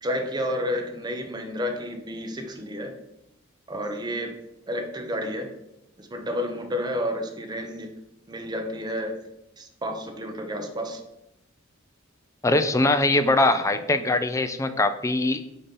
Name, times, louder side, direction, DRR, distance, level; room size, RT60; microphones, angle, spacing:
voice 1, 0.0-2.9 3.7-4.4 4.7-5.5 6.0-7.9 8.3-9.2 9.6-11.0, equal, 20° right, 3 dB, 0.7 m, -30 dB
voice 2, 12.4-15.4, left 2 dB, 15° left, 10 dB, 0.4 m, -22 dB
6.9 x 2.8 x 5.3 m, 0.87 s
head